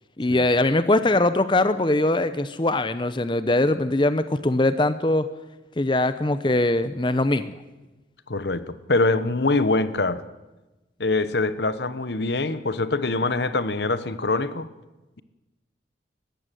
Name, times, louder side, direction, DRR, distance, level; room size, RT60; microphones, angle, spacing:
voice 1, 0.2-5.3 5.8-7.5, left 2 dB, 25° left, 12 dB, 0.7 m, -21 dB
voice 2, 8.3-10.2 11.0-14.7, left 2 dB, 70° left, 14 dB, 1.1 m, -24 dB
20.0 x 15.0 x 9.3 m, 1.1 s
head